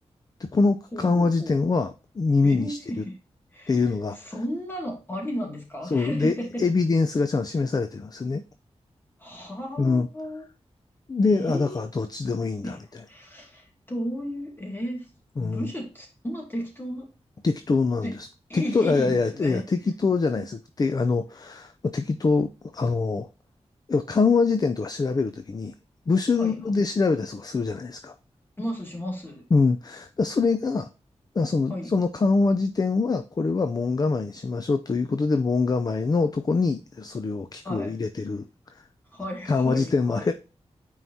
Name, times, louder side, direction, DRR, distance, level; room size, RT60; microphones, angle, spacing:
voice 1, 0.4-2.8 3.7-4.2 5.9-8.4 9.8-10.1 11.1-12.8 15.4-15.7 17.4-18.3 18.5-23.3 23.9-25.7 26.1-28.1 29.5-30.9 31.4-38.5 39.5-40.3, left 4 dB, 35° left, 0.4 m, -24 dB
voice 2, 0.9-1.6 2.4-3.2 3.5-3.8 4.1-6.6 9.2-10.5 11.3-11.8 12.6-12.8 13.1-15.1 15.4-17.1 18.0-18.1 18.5-19.6 26.4-26.6 28.6-29.4 31.7-31.9 37.6-37.9 39.1-40.3, equal, 20° left, 2.2 m, -34 dB
9.1 x 4.6 x 2.7 m
wide cardioid pair, 125°, 11 cm